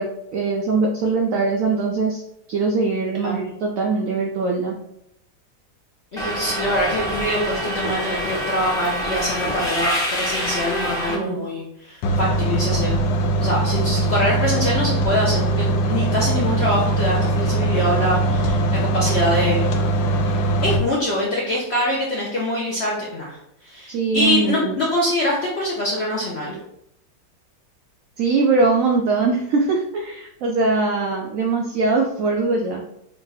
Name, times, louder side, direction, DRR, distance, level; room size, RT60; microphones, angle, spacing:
voice 1, 0.0-2.2 2.5-4.8 11.1-11.5 23.9-24.8 28.2-32.8, right 3 dB, 80° right, 1 dB, 0.7 m, -21 dB
voice 2, 6.1-13.0 13.4-19.6 20.2-26.6, left 1 dB, 60° left, -4 dB, 0.6 m, -24 dB
Subway metro underground, 6.2-11.1, equal, 5° left, 0.7 m, -26 dB
sound 1, 12.0-20.8, right 2 dB, 90° left, 1.3 m, -21 dB
3.5 x 2.7 x 3.9 m, 0.78 s
omnidirectional pair, 1.9 m